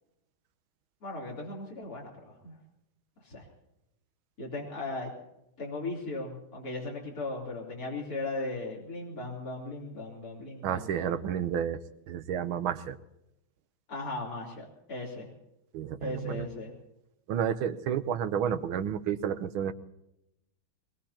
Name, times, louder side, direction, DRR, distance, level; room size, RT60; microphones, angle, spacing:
voice 1, 1.0-2.6 3.2-3.5 4.4-5.1 5.6-11.1 13.9-15.3 16.0-16.7, left 2 dB, 45° left, -3 dB, 4.0 m, -37 dB
voice 2, 10.6-11.8 12.1-13.0 15.7-16.4 17.3-19.7, right 9 dB, 85° right, 11 dB, 1.7 m, -31 dB
22.5 x 21.0 x 2.9 m, 0.85 s
omnidirectional pair, 2.2 m